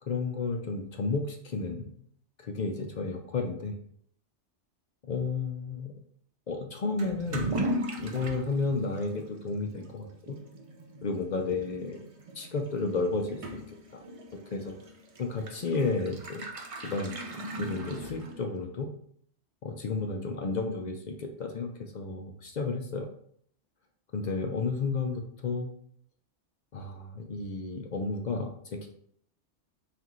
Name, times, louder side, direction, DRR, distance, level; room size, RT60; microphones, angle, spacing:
voice 1, 0.0-1.9 2.4-3.8 5.0-5.9 6.5-7.6 8.0-10.4 11.0-12.0 12.3-13.6 13.9-14.0 14.5-14.7 15.2-16.5 16.8-17.1 17.6-18.9 19.6-23.1 24.1-25.7 26.7-28.9, left 3 dB, 55° left, 3 dB, 0.5 m, -32 dB
Toilet flush / Liquid, 7.0-18.6, right 1 dB, 45° right, 0.4 m, -39 dB
5.8 x 2.5 x 3.0 m, 0.64 s
omnidirectional pair, 1.2 m